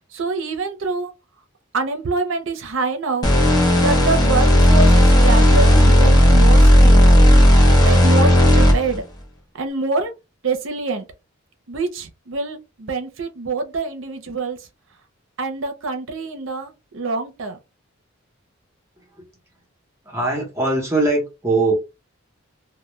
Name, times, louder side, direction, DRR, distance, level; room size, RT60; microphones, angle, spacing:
voice 1, 0.1-1.1 1.7-3.3 3.8-7.0 7.8-9.0 9.6-10.1 10.4-11.0 11.7-14.6 15.4-17.6, right 3 dB, 65° right, 0.6 m, -25 dB
sound 1, 3.2-9.0, equal, 20° left, 0.7 m, -12 dB
voice 2, 20.1-21.7, right 2 dB, 15° right, 0.8 m, -21 dB
2.2 x 2.1 x 3.0 m
head